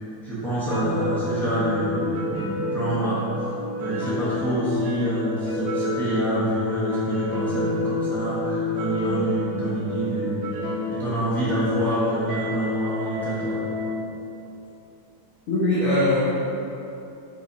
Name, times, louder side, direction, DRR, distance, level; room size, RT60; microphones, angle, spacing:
voice 1, 0.2-3.2 3.8-10.5 10.9-13.6, right 1 dB, ahead, -12 dB, 0.5 m, -27 dB
sound 1, 0.7-13.9, left 2 dB, 75° right, 1.4 m, -28 dB
voice 2, 15.5-16.2, left 1 dB, 70° left, -9 dB, 0.7 m, -21 dB
4.3 x 4.0 x 2.7 m, 2.8 s
omnidirectional pair, 2.3 m